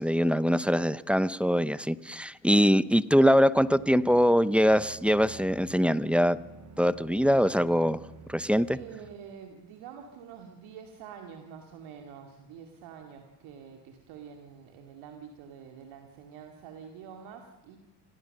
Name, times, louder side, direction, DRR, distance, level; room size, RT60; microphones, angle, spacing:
voice 1, 0.0-6.4 6.8-8.0 8.3-8.8, equal, ahead, 16 dB, 0.7 m, -23 dB
sound 1, 3.5-9.2, right 5 dB, 35° right, 2.5 m, -49 dB
voice 2, 8.7-17.8, right 7 dB, 80° right, 4 dB, 2.4 m, -47 dB
26.5 x 16.5 x 6.6 m, 1.1 s
supercardioid pair, 75°, 48 cm